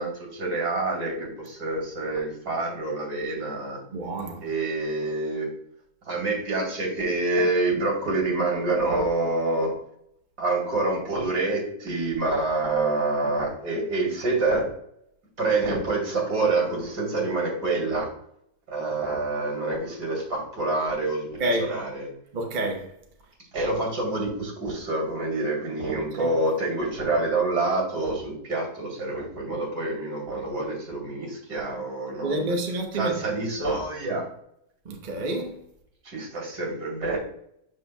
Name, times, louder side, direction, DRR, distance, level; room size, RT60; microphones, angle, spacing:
voice 1, 0.0-3.8 4.4-5.5 6.1-9.7 10.4-14.7 15.4-18.1 18.7-22.1 23.5-32.6 32.9-34.2 36.0-37.2, right 2 dB, 70° right, 3.1 m, -27 dB
voice 2, 3.9-4.4 21.4-21.7 22.3-22.9 26.1-26.3 32.2-33.2 34.8-35.6, right 1 dB, 35° right, 0.9 m, -28 dB
7.5 x 6.5 x 2.3 m
omnidirectional pair, 1.8 m